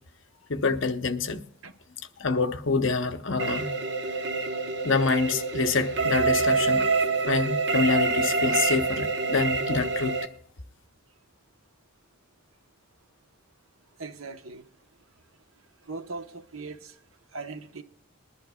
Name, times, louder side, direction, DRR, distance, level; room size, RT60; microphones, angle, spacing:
voice 1, 0.5-1.4 2.2-3.7 4.8-6.9 7.3-10.1, left 4 dB, 60° left, 0.9 m, -26 dB
sound 1, 3.4-10.3, right 4 dB, 55° right, 1.0 m, -26 dB
voice 2, 14.0-14.7 15.9-16.8 17.3-17.8, right 3 dB, 80° right, 1.1 m, -39 dB
22.0 x 11.0 x 2.3 m
head